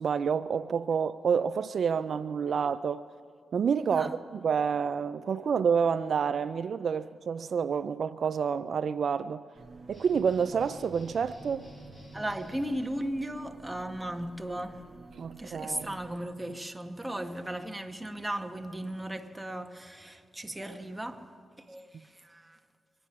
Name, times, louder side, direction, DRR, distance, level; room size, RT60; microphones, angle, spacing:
voice 1, 0.0-3.0 3.5-9.4 9.9-11.7 15.2-15.9, right 6 dB, 65° right, 0.3 m, -28 dB
sound 1, 9.5-16.2, right 3 dB, 50° right, 1.1 m, -51 dB
sound 2, 9.9-12.7, equal, 25° left, 4.4 m, -50 dB
voice 2, 12.1-14.9 15.4-21.3 21.7-22.6, right 1 dB, 15° right, 1.3 m, -36 dB
24.0 x 10.0 x 5.9 m
supercardioid pair, 45°, 0 cm